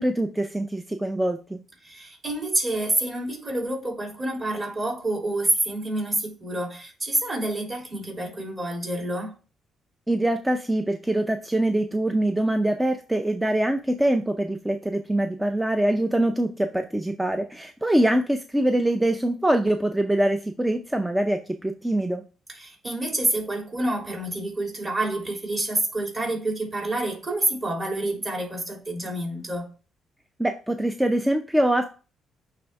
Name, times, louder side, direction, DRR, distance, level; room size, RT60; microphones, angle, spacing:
voice 1, 0.0-1.6 10.1-22.2 30.4-31.9, right 1 dB, 10° right, 0.5 m, -24 dB
voice 2, 1.8-9.3 22.5-29.7, right 1 dB, 30° right, 3.3 m, -28 dB
8.6 x 3.4 x 3.5 m
cardioid pair, 90°, 0 cm